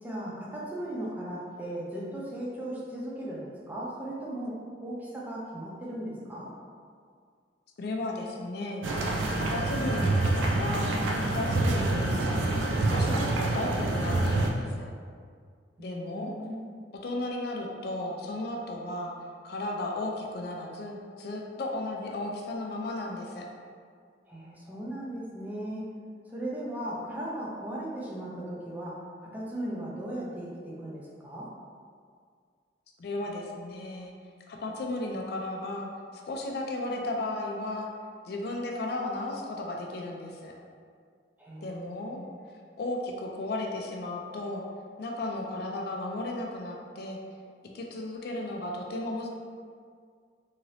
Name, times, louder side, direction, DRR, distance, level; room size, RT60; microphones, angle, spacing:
voice 1, 0.0-4.6 4.8-6.5 15.8-16.7 24.3-25.9 26.3-31.5 41.4-42.3, right 1 dB, 10° right, -6 dB, 0.5 m, -37 dB
voice 2, 7.8-8.9 9.3-10.9 11.2-14.9 15.8-16.3 16.9-19.2 19.4-23.5 33.0-34.1 34.5-37.9 38.2-40.5 41.6-42.2 42.8-44.6 45.0-47.2 47.7-49.3, left 2 dB, 55° left, 0 dB, 0.3 m, -34 dB
sound 1, 8.8-14.5, right 2 dB, 90° right, 0.4 m, -27 dB
2.8 x 2.6 x 3.1 m, 2.1 s
head